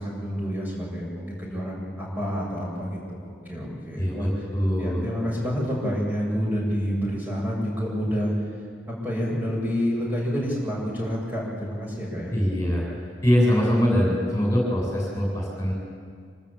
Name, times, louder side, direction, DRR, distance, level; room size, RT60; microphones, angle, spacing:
voice 1, 0.0-4.3 4.8-8.3 8.9-12.3, equal, 10° right, -3 dB, 7.5 m, -28 dB
voice 2, 4.0-5.0 12.3-12.8 13.2-15.7, equal, 15° left, -2 dB, 7.4 m, -23 dB
26.0 x 25.5 x 8.8 m, 2.1 s
head